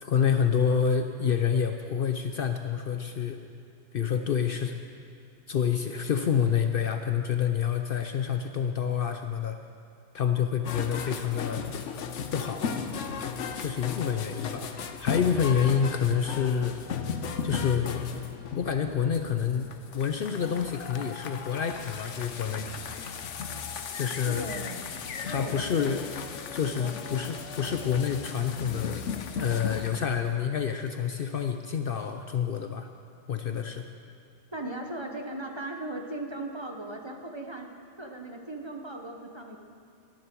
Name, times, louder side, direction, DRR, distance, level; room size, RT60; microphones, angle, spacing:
voice 1, 0.0-3.4 3.9-4.8 5.5-9.6 10.1-11.7 12.3-12.7 13.6-14.7 15.0-16.8 17.4-18.0 18.6-22.7 23.9-24.4 25.2-26.1 26.5-29.1 29.4-32.9 33.3-33.9, left 7 dB, 60° left, 7 dB, 0.7 m, -28 dB
sound 1, 10.6-30.0, left 6 dB, 80° left, 1.1 m, -36 dB
voice 2, 24.2-24.8 25.2-26.2 26.6-27.0 34.5-37.7 38.0-39.6, right 2 dB, 25° right, 2 dB, 0.9 m, -38 dB
18.0 x 10.5 x 4.6 m, 2.4 s
omnidirectional pair, 1.2 m